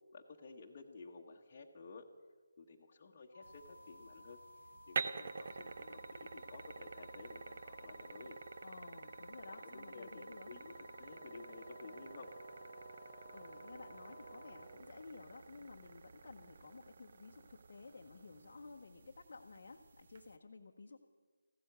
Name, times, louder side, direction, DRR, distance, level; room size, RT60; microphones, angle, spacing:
voice 1, 0.1-2.1 2.6-4.4 4.9-8.4 9.5-12.3, left 4 dB, 35° left, -1 dB, 1.1 m, -54 dB
sound 1, 3.3-14.7, left 2 dB, 80° left, 0.5 m, -58 dB
sound 2, 3.4-20.4, right 4 dB, 45° right, 0.6 m, -49 dB
voice 2, 8.6-10.5 13.1-21.0, left 3 dB, 50° left, 0 dB, 0.9 m, -54 dB
Brass instrument, 10.7-15.0, right 2 dB, 5° right, 1.2 m, -57 dB
15.5 x 13.0 x 6.7 m, 1.5 s
figure-of-eight pair, 155°, 0 cm